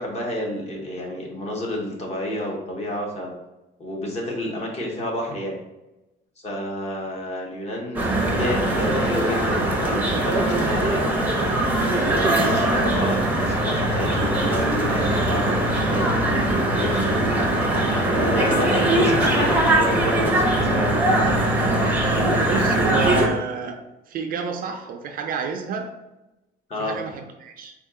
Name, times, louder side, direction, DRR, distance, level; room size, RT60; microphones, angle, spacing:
voice 1, 0.0-3.3 3.8-5.5 6.4-11.1 11.9-17.3 18.0-21.0 26.7-27.0, left 1 dB, 35° left, -1 dB, 1.0 m, -30 dB
sound 1, 7.9-23.3, right 1 dB, 10° right, 0.7 m, -21 dB
voice 2, 22.5-23.8 24.1-25.9 26.8-27.7, right 5 dB, 50° right, 5 dB, 0.4 m, -29 dB
4.4 x 2.4 x 3.6 m, 0.99 s
cardioid pair, 150°, 19 cm